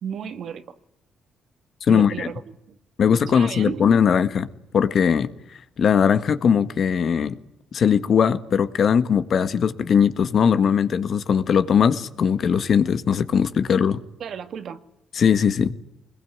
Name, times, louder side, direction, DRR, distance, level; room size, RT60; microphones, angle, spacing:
voice 1, 0.0-0.8 1.9-2.4 2.7-2.8 3.3-3.9 14.2-14.8, right 8 dB, 65° right, 2.0 m, -33 dB
voice 2, 1.8-2.3 3.0-4.5 4.7-5.3 5.8-7.4 7.7-14.0 15.2-15.7, left 7 dB, 55° left, 1.6 m, -19 dB
25.0 x 21.5 x 9.6 m
cardioid pair, 90°, 0 cm